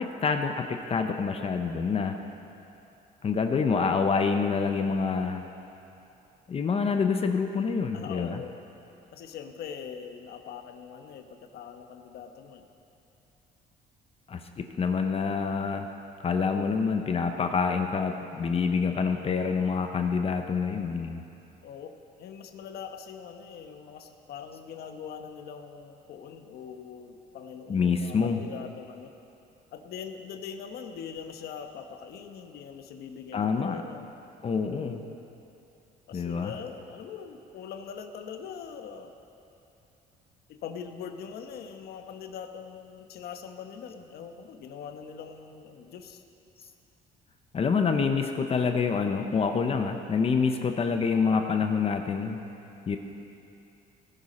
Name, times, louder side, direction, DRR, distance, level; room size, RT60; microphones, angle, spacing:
voice 1, 0.0-2.2 3.2-5.4 6.5-8.4 14.3-15.9 16.2-21.2 27.7-28.4 33.3-33.8 34.4-35.0 36.1-36.6 47.5-52.4 52.9-53.0, left 5 dB, 35° left, 6 dB, 0.8 m, -27 dB
voice 2, 7.9-8.5 9.1-12.7 21.6-29.1 29.7-34.1 36.1-39.1 40.5-46.2, left 7 dB, 70° left, 6 dB, 1.1 m, -42 dB
18.0 x 10.5 x 4.3 m, 2.8 s
cardioid pair, 110°, 17 cm